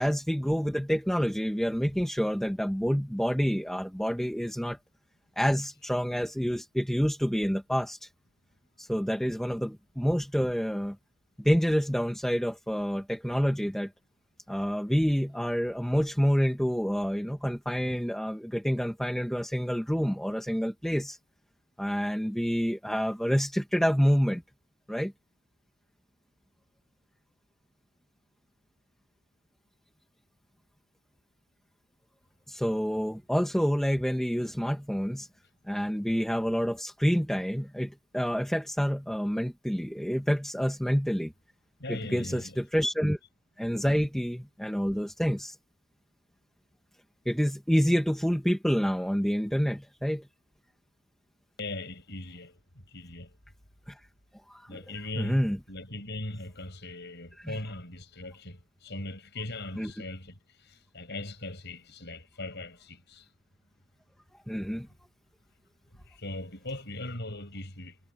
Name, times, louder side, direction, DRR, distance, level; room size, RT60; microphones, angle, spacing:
voice 1, 0.0-4.8 5.4-8.1 8.8-11.0 11.4-13.9 14.5-21.2 21.8-24.4 24.9-25.1 32.5-35.3 35.7-41.3 41.9-43.2 43.6-45.5 47.2-50.2 53.9-54.0 54.5-54.8 55.2-55.6 57.5-57.6 59.8-59.9 64.5-64.9, equal, ahead, 1.2 m, -28 dB
voice 2, 41.8-42.7 51.6-53.4 54.7-63.3 65.9-68.0, left 2 dB, 50° left, 7.1 m, -39 dB
head